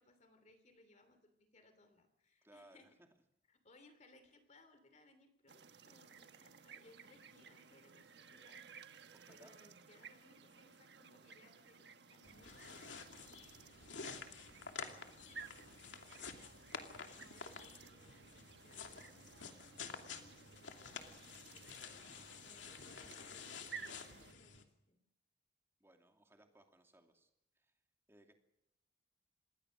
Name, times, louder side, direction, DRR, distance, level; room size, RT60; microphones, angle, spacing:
voice 1, 0.0-2.9 3.5-13.0 13.3-13.5 17.1-25.0, left 2 dB, 40° left, 9 dB, 3.0 m, -67 dB
voice 2, 2.4-3.1 9.1-9.5 14.1-14.3 25.8-27.3 27.5-27.7 28.1-28.3, right 1 dB, 15° right, 4 dB, 2.7 m, -64 dB
sound 1, 5.5-24.3, right 6 dB, 65° right, 1.3 m, -57 dB
sound 2, 12.2-24.6, left 5 dB, 85° left, 2.6 m, -51 dB
27.0 x 21.0 x 6.5 m, 0.81 s
head